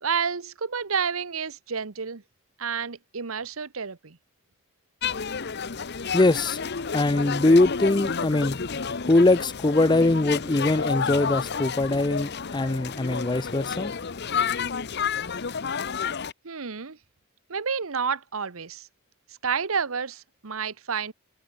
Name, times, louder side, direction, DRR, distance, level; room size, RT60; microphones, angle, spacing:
voice 1, 0.0-2.2 2.6-4.2 16.4-17.0 17.5-18.9 19.4-21.1, right 6 dB, 80° right, 1.1 m, -30 dB
sound 1, 5.0-16.3, left 6 dB, 50° left, 0.9 m, -30 dB
voice 2, 6.1-6.6 6.9-8.6 9.0-13.9, left 2 dB, 20° left, 0.5 m, -22 dB
head